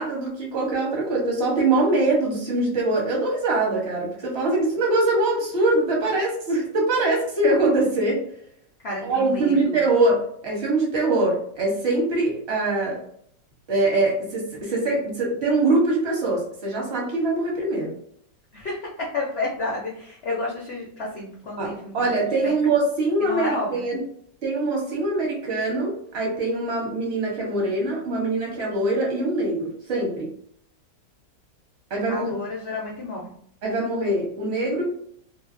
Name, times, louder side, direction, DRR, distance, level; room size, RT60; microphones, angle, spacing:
voice 1, 0.0-8.2 9.0-13.0 13.7-17.9 21.6-24.0 24.4-30.3 31.9-32.3 33.6-34.8, right 2 dB, 45° right, -1 dB, 1.0 m, -23 dB
voice 2, 8.8-9.8 18.5-22.1 22.4-22.5 23.2-23.9 32.1-33.3, left 2 dB, 70° left, -3 dB, 0.6 m, -31 dB
2.8 x 2.6 x 2.5 m, 0.66 s
omnidirectional pair, 1.9 m